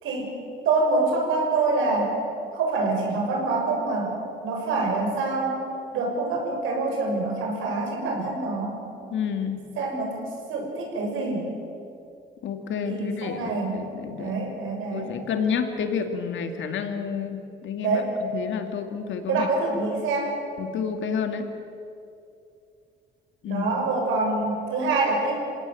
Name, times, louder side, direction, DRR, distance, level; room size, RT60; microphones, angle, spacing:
voice 1, 0.0-0.4 0.6-2.2 2.5-4.2 4.4-5.6 5.9-8.8 9.8-11.5 12.8-13.8 14.1-15.1 17.8-18.1 19.3-20.4 23.5-25.3, right 3 dB, 85° right, 0 dB, 6.4 m, -26 dB
voice 2, 9.1-9.6 12.4-14.3 14.9-18.0 18.3-19.5 20.6-21.5 23.4-23.7, left 6 dB, 75° left, 6 dB, 2.3 m, -29 dB
27.0 x 17.5 x 7.8 m, 2.6 s
cardioid pair, 90°, 20 cm